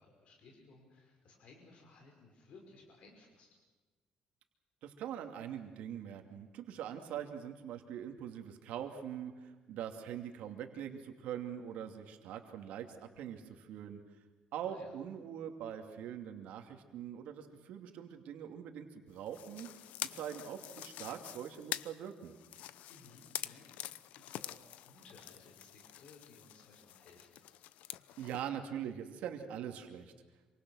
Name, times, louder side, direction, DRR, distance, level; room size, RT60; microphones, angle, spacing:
voice 1, 0.0-3.5 14.6-14.9 22.9-27.3, left 3 dB, 55° left, 1 dB, 5.5 m, -59 dB
voice 2, 4.8-14.0 14.5-19.7 20.1-22.3 28.2-30.1, right 9 dB, 80° right, 5 dB, 2.6 m, -43 dB
sound 1, 19.3-28.5, left 13 dB, 85° left, 0.7 m, -46 dB
27.0 x 25.5 x 6.4 m, 1.3 s
cardioid pair, 160°, 2 cm